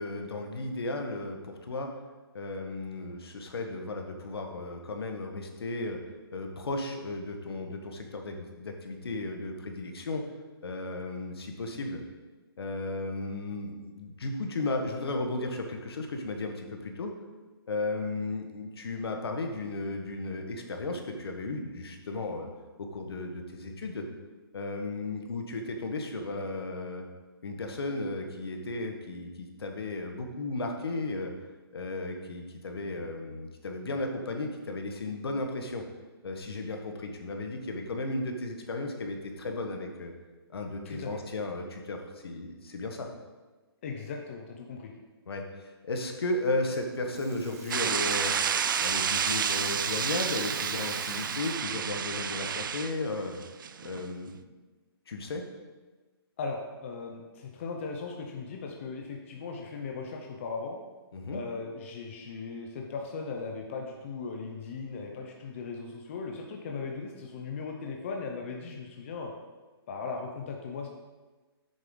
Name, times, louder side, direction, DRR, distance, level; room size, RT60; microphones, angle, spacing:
voice 1, 0.0-1.9 2.3-6.0 6.3-10.2 10.6-12.0 12.6-17.1 17.7-22.5 22.8-24.1 24.5-27.0 27.4-31.3 31.7-35.8 36.2-40.1 40.5-43.1 45.3-48.4 48.8-53.4 53.8-54.3 55.1-55.4 61.1-61.4, left 2 dB, 70° left, 3 dB, 1.5 m, -35 dB
voice 2, 43.8-44.9 56.4-60.8 61.3-69.3 69.9-70.9, left 4 dB, 30° left, 1 dB, 0.7 m, -38 dB
Rattle (instrument), 46.7-51.8, right 5 dB, 40° right, 1.1 m, -45 dB
sound 1, 47.7-54.1, right 7 dB, 55° right, 0.4 m, -30 dB
8.7 x 6.8 x 3.9 m, 1.3 s
hypercardioid pair, 165°, 13 cm